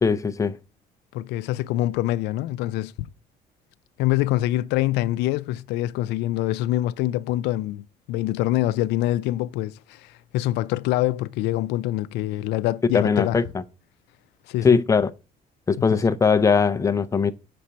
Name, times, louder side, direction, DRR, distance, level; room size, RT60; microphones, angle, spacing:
voice 1, 0.0-0.5 12.9-13.4 14.6-15.1 15.7-17.3, left 5 dB, 20° left, 0.5 m, -20 dB
voice 2, 1.1-3.1 4.0-13.4 14.5-14.8 15.8-16.0, left 15 dB, 85° left, 0.4 m, -25 dB
6.7 x 4.3 x 6.3 m
cardioid pair, 110°, 17 cm